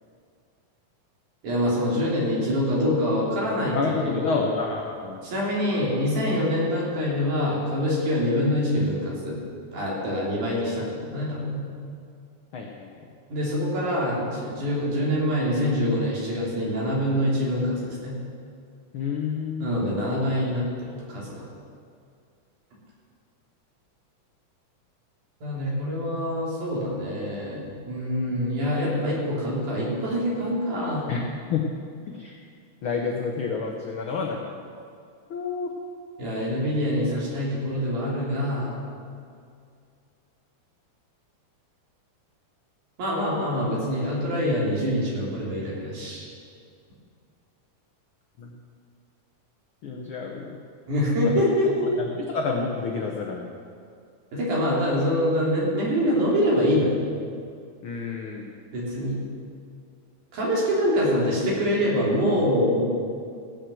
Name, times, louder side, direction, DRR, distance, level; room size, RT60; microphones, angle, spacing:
voice 1, 1.4-4.5 5.2-9.4 9.7-11.6 13.3-18.2 19.6-21.4 25.4-31.1 36.2-38.8 43.0-46.2 50.9-51.9 54.3-57.0 58.7-59.2 60.3-62.8, equal, 70° right, -5 dB, 4.6 m, -25 dB
voice 2, 3.7-5.2 12.5-13.0 18.9-20.0 31.1-31.7 32.1-32.4 32.8-34.6 35.3-35.7 48.4-48.5 49.8-50.5 51.2-51.4 52.0-53.5 57.8-58.6, left 5 dB, 75° left, 1 dB, 1.2 m, -29 dB
15.5 x 6.9 x 7.7 m, 2.3 s
omnidirectional pair, 3.6 m